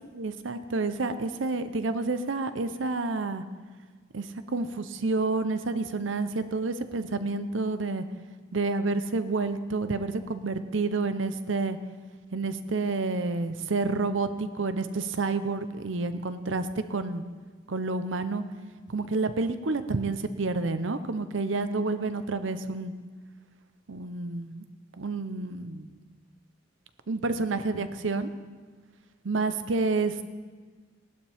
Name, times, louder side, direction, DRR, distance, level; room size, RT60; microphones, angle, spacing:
voice 1, 0.1-3.4 4.1-8.0 8.5-11.8 12.3-17.2 17.7-18.4 18.9-22.9 23.9-24.6 25.0-25.9 27.1-28.3 29.2-30.2, right 3 dB, 75° right, 11 dB, 0.7 m, -29 dB
18.0 x 12.0 x 3.5 m, 1.5 s
head